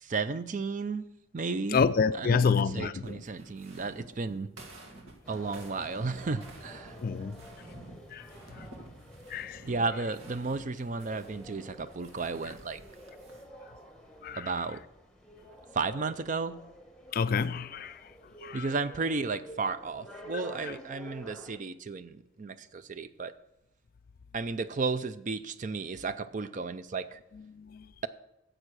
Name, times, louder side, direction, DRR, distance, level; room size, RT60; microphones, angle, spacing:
voice 1, 0.0-1.1 1.3-1.8 2.2-4.5 5.3-7.0 9.7-12.8 14.3-14.8 15.7-16.5 18.5-23.3 24.3-27.2, right 4 dB, 40° right, 0.5 m, -33 dB
voice 2, 1.7-3.2 7.0-7.4 8.1-8.7 9.3-9.6 14.2-14.5 17.1-18.1 18.4-18.7 20.6-20.7 27.3-27.9, left 5 dB, 45° left, 0.3 m, -29 dB
sound 1, 3.0-13.4, right 2 dB, 80° right, 2.0 m, -50 dB
sound 2, 5.2-21.6, right 1 dB, 5° left, 1.0 m, -50 dB
10.0 x 7.5 x 6.3 m
head